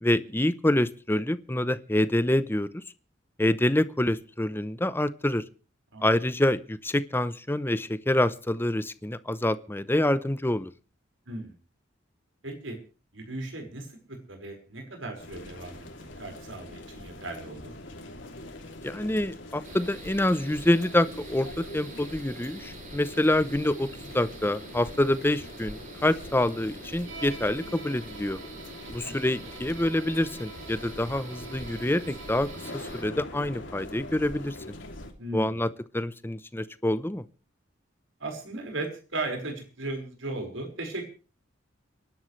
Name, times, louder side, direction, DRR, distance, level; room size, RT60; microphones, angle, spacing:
voice 1, 0.0-2.7 3.4-5.4 6.0-10.7 18.8-28.4 28.9-34.6 35.3-35.7 35.9-37.2, left 1 dB, 10° left, 15 dB, 0.7 m, -26 dB
voice 2, 12.4-12.8 13.1-17.7 29.0-29.3 35.2-35.6 38.2-41.1, right 2 dB, 85° right, 3 dB, 5.2 m, -37 dB
sound 1, 15.2-35.1, left 1 dB, 70° left, 2.9 m, -43 dB
sound 2, 19.6-33.0, right 2 dB, 45° right, 3.8 m, -46 dB
Bowed string instrument, 27.0-33.0, right 3 dB, 70° right, 2.9 m, -47 dB
29.5 x 11.5 x 3.3 m, 0.36 s
head